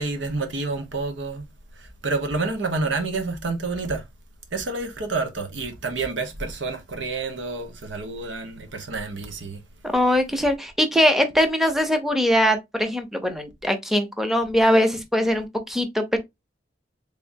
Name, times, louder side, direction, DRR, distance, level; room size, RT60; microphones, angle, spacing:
voice 1, 0.0-1.4 2.0-4.0 4.5-9.6, right 3 dB, 90° right, 1.0 m, -28 dB
voice 2, 9.9-16.2, equal, ahead, 0.7 m, -21 dB
3.7 x 3.4 x 2.6 m
head